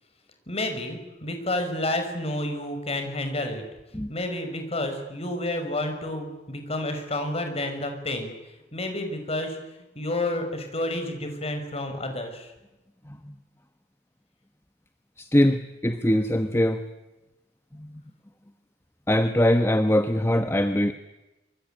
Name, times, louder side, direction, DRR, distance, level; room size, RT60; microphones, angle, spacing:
voice 1, 0.5-3.6 4.1-8.3 8.7-9.6 10.0-12.5, left 1 dB, 35° left, 6 dB, 5.8 m, -30 dB
voice 2, 13.1-13.4 15.2-16.8 17.7-18.0 19.1-20.9, left 1 dB, 15° left, 9 dB, 1.1 m, -22 dB
25.5 x 25.5 x 9.1 m, 1.0 s
head